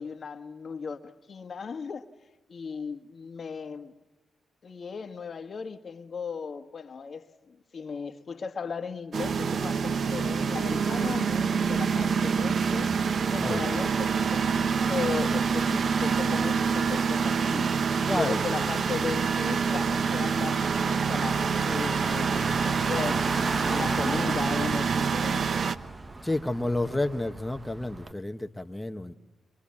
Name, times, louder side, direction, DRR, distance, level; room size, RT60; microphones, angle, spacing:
voice 1, 0.0-2.1 2.5-3.9 4.6-13.0 13.3-14.6 14.9-17.7 18.1-23.3 23.7-25.7, left 5 dB, 55° left, 1.6 m, -36 dB
sound 1, 9.1-25.8, right 5 dB, 60° right, 1.0 m, -26 dB
voice 2, 18.1-18.4 26.2-29.1, left 2 dB, 10° left, 1.4 m, -30 dB
Car / Engine, 19.9-28.1, right 2 dB, 25° right, 1.5 m, -36 dB
24.0 x 24.0 x 8.6 m
supercardioid pair, 60°, 0 cm